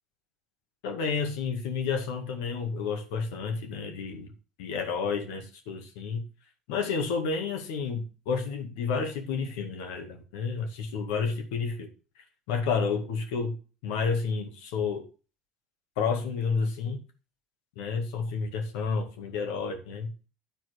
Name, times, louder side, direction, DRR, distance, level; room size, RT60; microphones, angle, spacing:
voice 1, 0.8-4.3 4.6-6.2 6.7-11.9 12.5-13.5 13.8-15.0 16.0-17.0 17.8-20.1, left 5 dB, 70° left, 5 dB, 2.0 m, -30 dB
10.5 x 4.8 x 6.4 m, 0.35 s
hypercardioid pair, 70°, 2 cm